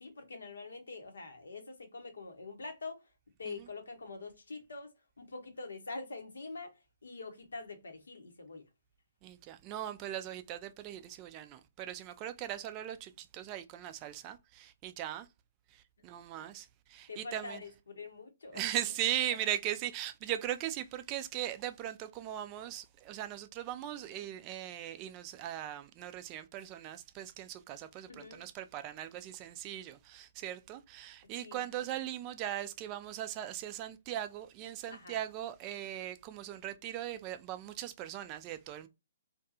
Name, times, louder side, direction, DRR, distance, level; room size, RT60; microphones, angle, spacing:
voice 1, 0.0-3.0 3.4-4.9 5.2-6.7 7.0-8.6 17.1-18.6 28.1-28.4 31.4-31.6 34.9-35.2, left 3 dB, 70° left, 0.8 m, -45 dB
voice 2, 9.2-15.3 16.0-17.6 18.5-38.9, right 12 dB, 30° right, 0.3 m, -39 dB
2.6 x 2.2 x 2.5 m
figure-of-eight pair, 130°, 0 cm